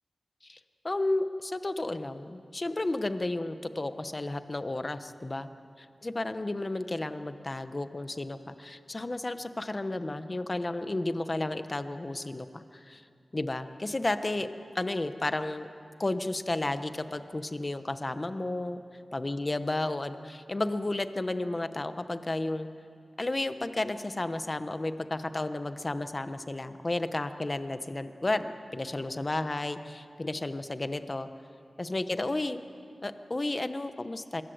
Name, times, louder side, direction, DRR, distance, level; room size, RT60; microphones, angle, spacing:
voice 1, 0.8-5.5 5.8-13.0 13.3-14.5 14.7-15.7 16.0-18.8 19.1-22.7 23.2-31.3 31.8-32.6 33.0-34.4, left 2 dB, 30° left, 10 dB, 1.1 m, -32 dB
25.0 x 21.5 x 8.0 m, 2.4 s
wide cardioid pair, 100°, 0 cm